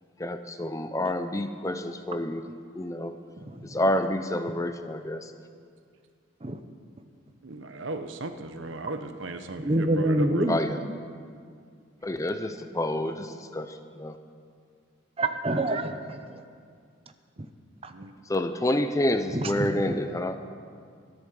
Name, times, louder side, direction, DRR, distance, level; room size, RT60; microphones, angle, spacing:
voice 1, 0.2-2.5 2.7-3.2 3.6-5.3 10.5-10.8 12.0-14.2 18.3-20.4, left 1 dB, 15° left, 0.5 m, -28 dB
voice 2, 3.4-3.8 6.4-6.6 9.6-10.6 10.9-11.0 15.2-16.4 17.8-17.9 19.3-19.9, right 1 dB, 30° right, 0.7 m, -27 dB
voice 3, 7.4-10.6 17.9-18.1, right 2 dB, 75° right, 0.9 m, -36 dB
13.0 x 10.5 x 6.9 m
head